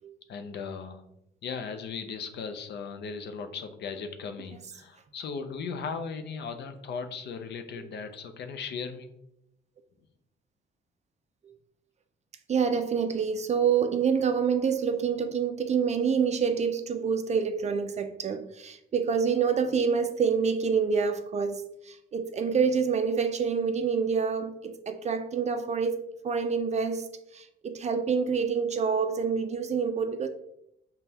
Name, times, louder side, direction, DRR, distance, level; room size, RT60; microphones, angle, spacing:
voice 1, 0.3-1.1 1.4-9.1, left 5 dB, 60° left, 0.5 m, -37 dB
voice 2, 12.5-30.3, right 6 dB, 35° right, 0.4 m, -27 dB
5.2 x 2.2 x 2.8 m
cardioid pair, 90°, 20 cm